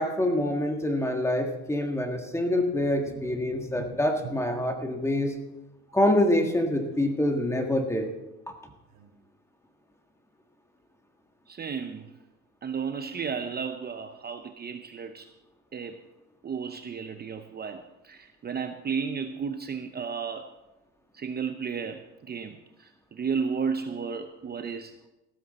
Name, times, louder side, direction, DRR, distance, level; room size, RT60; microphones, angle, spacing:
voice 1, 0.0-5.3 5.9-8.1, left 1 dB, 10° left, 4 dB, 1.6 m, -26 dB
sound 1, 2.4-5.0 6.0-7.9 8.9-9.1, right 6 dB, 75° right, 3.3 m, -48 dB
voice 2, 11.5-12.1 12.6-15.3 15.7-16.0 16.4-20.5 21.1-24.9, right 6 dB, 30° right, 7 dB, 0.7 m, -33 dB
15.0 x 13.5 x 4.2 m, 0.98 s
cardioid pair, 130°, 33 cm